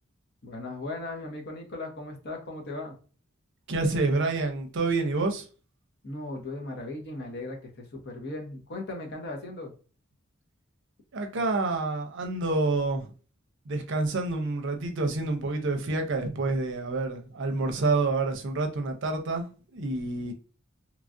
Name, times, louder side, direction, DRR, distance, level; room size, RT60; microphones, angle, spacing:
voice 1, 0.4-2.9 6.0-9.7, left 2 dB, 55° left, 0.9 m, -37 dB
voice 2, 3.7-5.4 11.1-13.1 13.7-19.5 19.7-20.3, right 3 dB, 60° right, 0.6 m, -28 dB
3.0 x 2.4 x 2.5 m
head